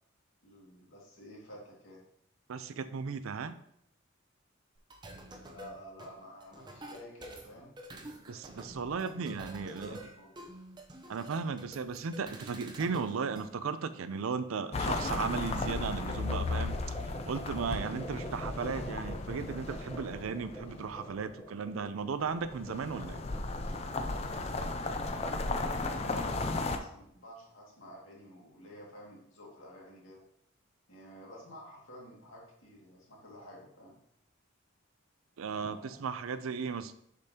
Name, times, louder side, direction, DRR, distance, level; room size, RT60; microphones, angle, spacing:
voice 1, 0.4-2.0 5.5-7.8 8.8-10.5 25.6-30.2 30.9-34.0 35.4-36.0, equal, 70° left, -3 dB, 2.0 m, -51 dB
voice 2, 2.5-3.6 8.3-10.0 11.1-16.8 17.3-23.2 35.4-36.9, right 5 dB, 85° right, 12 dB, 0.4 m, -36 dB
sound 1, 4.8-13.5, right 1 dB, 20° right, 0.6 m, -48 dB
sound 2, 14.7-21.2 22.3-26.8, left 3 dB, 30° left, 0.4 m, -35 dB
sound 3, 16.1-25.7, right 1 dB, 10° left, 0.9 m, -47 dB
6.9 x 5.1 x 2.8 m, 0.72 s
head